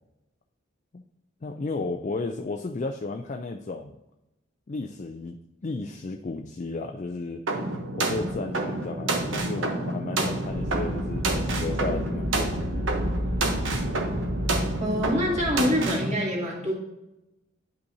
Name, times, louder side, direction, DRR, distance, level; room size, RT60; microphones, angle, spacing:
voice 1, 1.4-4.0 4.7-5.4 5.6-7.4 7.9-12.9, left 3 dB, 35° left, 3 dB, 0.4 m, -33 dB
sound 1, 7.5-16.1, right 2 dB, 80° right, 1.0 m, -29 dB
sound 2, 10.5-15.5, equal, 55° right, 1.3 m, -32 dB
voice 2, 14.8-16.7, left 1 dB, 35° right, -4 dB, 2.2 m, -26 dB
10.0 x 5.3 x 2.7 m, 0.95 s
head